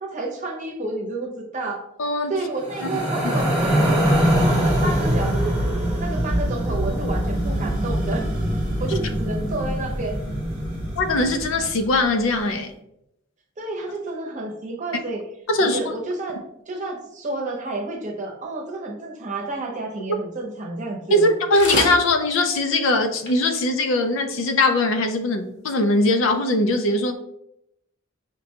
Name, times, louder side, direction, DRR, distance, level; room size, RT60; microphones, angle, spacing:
voice 1, 0.0-1.8 2.3-3.7 4.1-5.5 5.9-8.2 8.8-10.2 13.6-15.2 15.6-16.4 16.7-21.3, right 2 dB, 40° right, 0 dB, 0.7 m, -30 dB
voice 2, 2.0-2.3 2.8-2.9 11.0-12.7 15.5-15.9 21.1-27.2, left 2 dB, 90° left, 8 dB, 0.4 m, -21 dB
sound 1, 2.6-11.9, equal, 5° right, 1.0 m, -23 dB
sound 2, 21.1-21.3 21.5-22.0 22.5-22.6 22.9-23.0 23.2-23.3 23.9-24.0, left 1 dB, 60° left, 0.8 m, -26 dB
5.1 x 2.2 x 2.8 m, 0.80 s
head